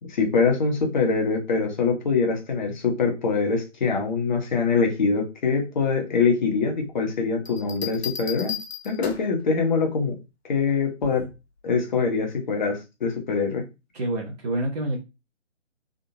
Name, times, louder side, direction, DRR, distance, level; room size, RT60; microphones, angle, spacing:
voice 1, 0.0-8.6 8.8-10.1 10.5-11.2 11.6-13.6, left 4 dB, 40° left, 2 dB, 1.2 m, -24 dB
sound 1, 7.5-9.4 11.0-11.4, left 8 dB, 60° left, 1.0 m, -35 dB
voice 2, 13.9-15.0, right 1 dB, 35° right, -3 dB, 0.9 m, -28 dB
3.7 x 3.3 x 2.8 m, 0.26 s
figure-of-eight pair, 140°, 37 cm